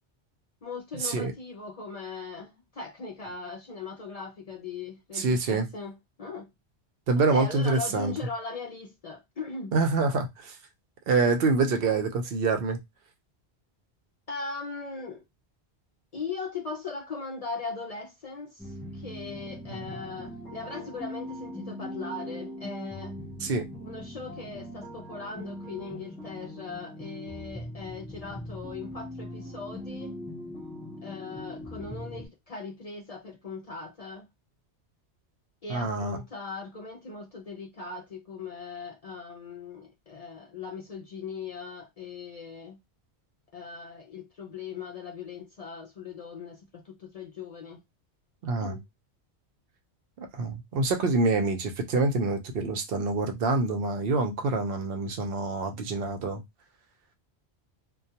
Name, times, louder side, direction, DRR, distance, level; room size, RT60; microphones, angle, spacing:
voice 1, 0.6-6.5 7.2-9.7 14.3-15.2 16.1-23.2 23.8-30.2 31.0-34.3 35.6-42.8 43.5-47.8 48.6-48.8, left 4 dB, 60° left, 0.4 m, -39 dB
voice 2, 5.1-5.7 7.1-8.1 9.7-10.6 11.1-12.8 19.7-19.8 23.4-23.7 35.7-36.2 48.4-48.7 50.2-56.4, right 3 dB, 60° right, 0.8 m, -26 dB
sound 1, 18.6-32.3, left 1 dB, ahead, 0.5 m, -41 dB
2.2 x 2.2 x 2.7 m
omnidirectional pair, 1.2 m